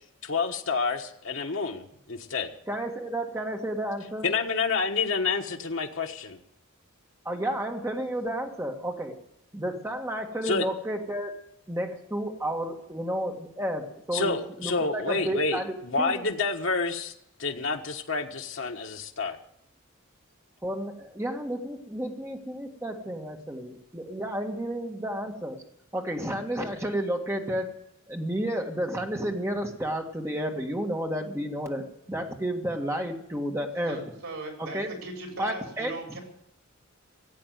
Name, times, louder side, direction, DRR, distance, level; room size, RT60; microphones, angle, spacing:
voice 1, 0.2-2.5 4.2-6.4 10.4-10.6 14.1-17.1 17.4-19.4, left 4 dB, 60° left, 3 dB, 1.4 m, -28 dB
voice 2, 2.7-4.3 7.3-9.1 9.5-14.3 14.6-16.2 20.6-25.6 25.9-27.7 28.1-34.0 34.6-34.9 35.4-35.9, equal, 15° right, 2 dB, 1.9 m, -31 dB
voice 3, 33.9-36.2, right 2 dB, 80° right, 2 dB, 4.6 m, -38 dB
17.0 x 8.4 x 9.4 m, 0.75 s
head